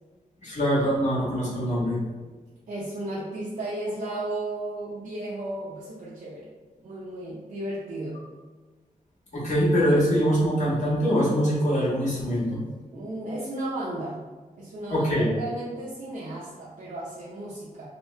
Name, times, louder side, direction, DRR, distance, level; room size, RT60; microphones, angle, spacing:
voice 1, 0.4-2.0 9.3-12.6 14.9-15.2, equal, 55° left, -7 dB, 1.4 m, -23 dB
voice 2, 2.7-6.5 6.8-8.3 12.9-14.3 14.6-17.9, right 1 dB, 70° right, -8 dB, 0.6 m, -34 dB
2.9 x 2.7 x 3.2 m, 1.3 s
wide cardioid pair, 130°, 14 cm